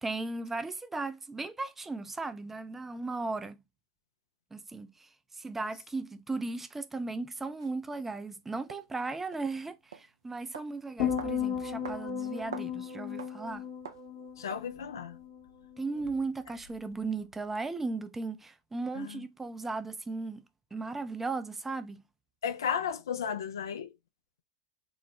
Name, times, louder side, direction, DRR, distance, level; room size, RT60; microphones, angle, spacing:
voice 1, 0.0-3.6 4.5-5.1 5.4-13.6 15.8-20.4 20.7-22.0, right 3 dB, 10° right, 0.4 m, -36 dB
sound 1, 7.6-7.7 8.7-8.8 9.3-9.5 9.9-10.1 10.5-10.7 11.2-11.4 11.8-12.0 12.3-12.7 13.2-13.4 13.8-14.1 14.5-14.7, right 7 dB, 85° right, 0.5 m, -43 dB
sound 2, 11.0-15.4 15.7-16.1, left 8 dB, 60° left, 0.9 m, -35 dB
voice 2, 14.4-15.2 19.0-19.2 22.4-23.9, left 7 dB, 80° left, 0.3 m, -34 dB
3.8 x 2.1 x 2.9 m
hypercardioid pair, 95°, 2 cm